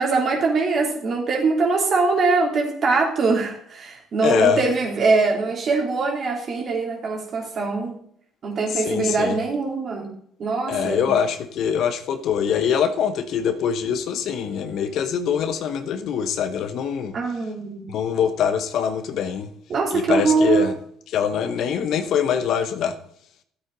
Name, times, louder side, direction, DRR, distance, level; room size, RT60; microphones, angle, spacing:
voice 1, 0.0-8.0 8.4-10.1 10.4-11.1 17.1-17.8 19.7-20.7, right 4 dB, 50° right, 3.3 m, -22 dB
voice 2, 4.2-4.6 8.7-9.4 10.7-17.2 17.9-19.5 19.9-20.7 21.1-23.0, left 8 dB, 60° left, 1.0 m, -23 dB
13.0 x 8.3 x 4.0 m
hypercardioid pair, 55°, 0 cm